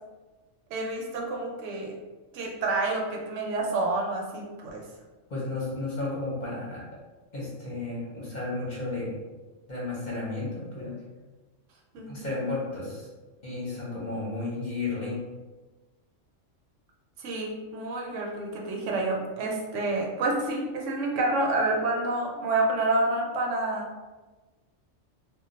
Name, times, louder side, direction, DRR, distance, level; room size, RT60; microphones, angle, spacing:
voice 1, 0.7-2.0 2.3-4.8 11.9-12.3 17.2-23.9, right 2 dB, 75° right, 0 dB, 0.9 m, -28 dB
voice 2, 5.3-6.9 7.3-9.2 9.7-11.0 12.1-13.1 13.4-15.2, left 2 dB, 40° left, -6 dB, 0.8 m, -33 dB
2.2 x 2.2 x 3.8 m, 1.2 s
omnidirectional pair, 1.3 m